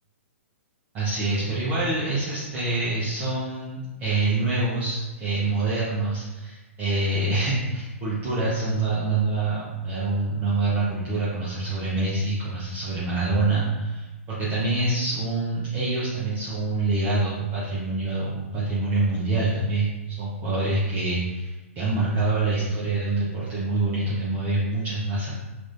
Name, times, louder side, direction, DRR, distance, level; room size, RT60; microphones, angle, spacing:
voice 1, 0.9-25.3, right 2 dB, 25° right, -9 dB, 0.8 m, -26 dB
4.6 x 2.6 x 2.6 m, 1.2 s
figure-of-eight pair, 115°, 8 cm